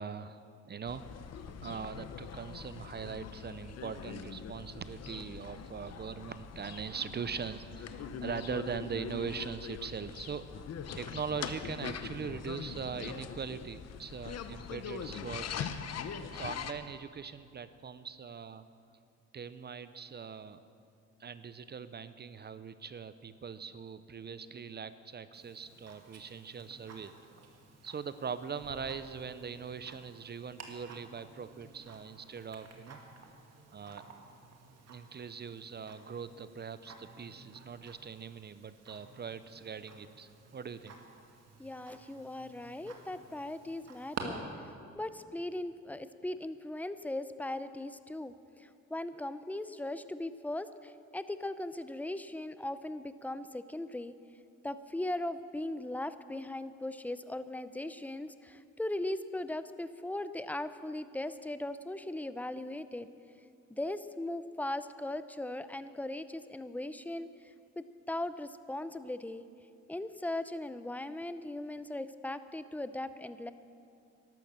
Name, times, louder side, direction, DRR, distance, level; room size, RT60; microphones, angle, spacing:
voice 1, 0.0-10.6 10.9-16.1 16.3-18.6 19.3-20.6 21.2-27.1 27.8-33.0 33.7-34.0 34.9-40.9, right 6 dB, 35° right, 13 dB, 0.6 m, -41 dB
sound 1, 0.8-16.7, left 7 dB, 55° left, 0.9 m, -42 dB
Tick-tock, 25.3-44.2, right 6 dB, 55° right, 2.1 m, -52 dB
voice 2, 41.6-44.5 44.9-54.1 54.6-63.1 63.7-69.4 69.9-73.5, left 1 dB, 5° left, 12 dB, 0.6 m, -39 dB
12.0 x 12.0 x 7.4 m, 2.4 s
cardioid pair, 90°, 30 cm